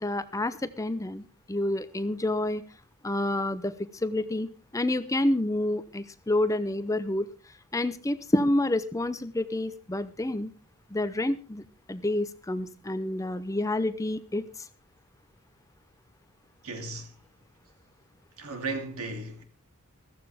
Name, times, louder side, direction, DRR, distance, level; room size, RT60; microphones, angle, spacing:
voice 1, 0.0-2.6 3.0-7.3 7.7-10.5 10.9-11.6 11.9-14.4, left 1 dB, 15° left, 0.6 m, -28 dB
voice 2, 16.6-17.1 18.4-19.4, right 3 dB, 70° right, 2.8 m, -35 dB
15.0 x 14.5 x 3.5 m
head